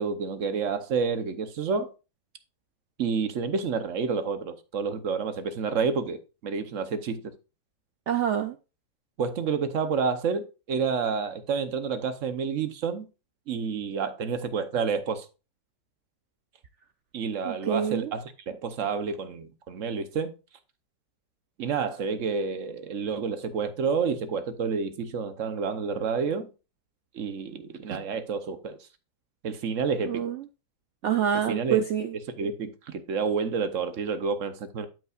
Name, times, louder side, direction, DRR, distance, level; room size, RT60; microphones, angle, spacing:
voice 1, 0.0-1.9 3.0-7.3 9.2-13.1 13.5-15.3 17.1-20.3 21.6-26.5 27.1-28.8 29.4-30.2 31.5-31.8 32.4-34.9, right 5 dB, 55° right, 1.1 m, -29 dB
voice 2, 8.1-8.6 17.4-18.1 30.1-30.5 31.0-32.1, right 9 dB, 80° right, 0.6 m, -26 dB
12.5 x 5.5 x 2.4 m
omnidirectional pair, 1.9 m